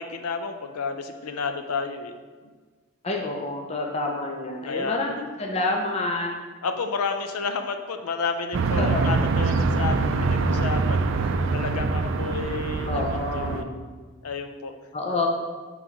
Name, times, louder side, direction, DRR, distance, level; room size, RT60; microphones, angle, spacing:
voice 1, 0.0-2.1 4.7-5.2 6.6-13.7 14.2-14.7, left 4 dB, 85° left, 7 dB, 0.5 m, -31 dB
voice 2, 3.0-6.3 8.7-9.0 12.9-13.9 14.9-15.3, left 2 dB, 30° left, 0 dB, 0.5 m, -28 dB
sound 1, 8.5-13.6, right 4 dB, 60° right, 0.4 m, -24 dB
5.9 x 3.2 x 5.2 m, 1.5 s
head